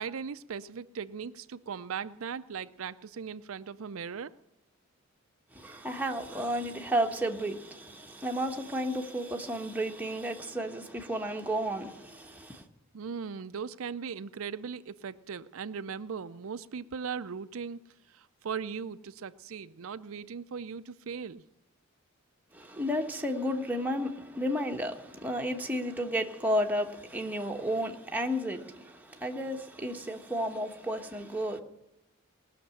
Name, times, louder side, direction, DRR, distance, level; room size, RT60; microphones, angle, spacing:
voice 1, 0.0-4.4 12.9-17.8 18.1-21.4, right 6 dB, 80° right, 0.5 m, -38 dB
voice 2, 5.5-12.6 22.5-31.6, equal, 10° right, 1.2 m, -32 dB
20.0 x 6.7 x 9.9 m
head